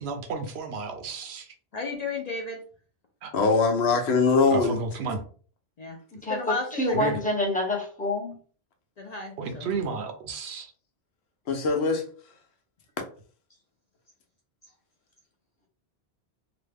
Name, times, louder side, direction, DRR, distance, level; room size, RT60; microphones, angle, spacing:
voice 1, 0.0-1.5 3.2-3.3 4.5-5.2 6.9-7.2 9.4-10.7, right 4 dB, 75° right, 0.9 m, -32 dB
voice 2, 1.7-2.6 5.8-6.0 6.3-6.9 9.0-9.7, left 3 dB, 50° left, 0.5 m, -33 dB
voice 3, 3.3-4.8 11.5-12.0, left 4 dB, 75° left, 1.0 m, -22 dB
voice 4, 6.2-8.4, left 1 dB, 10° left, 0.6 m, -27 dB
3.0 x 2.2 x 3.3 m
omnidirectional pair, 1.1 m